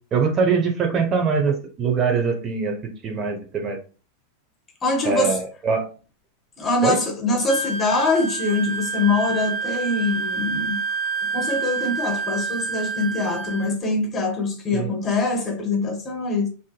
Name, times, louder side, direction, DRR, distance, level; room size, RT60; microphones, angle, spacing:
voice 1, 0.1-2.7 3.0-3.8 5.0-5.9 6.8-7.0 14.7-14.9, right 5 dB, 35° right, 0.7 m, -22 dB
voice 2, 4.8-5.4 6.6-10.8 11.3-16.5, left 3 dB, 25° left, 1.0 m, -23 dB
Wind instrument woodwind instrument, 7.5-13.7, right 5 dB, 5° right, 0.9 m, -28 dB
2.6 x 2.6 x 2.3 m
hypercardioid pair, 95°, 0 cm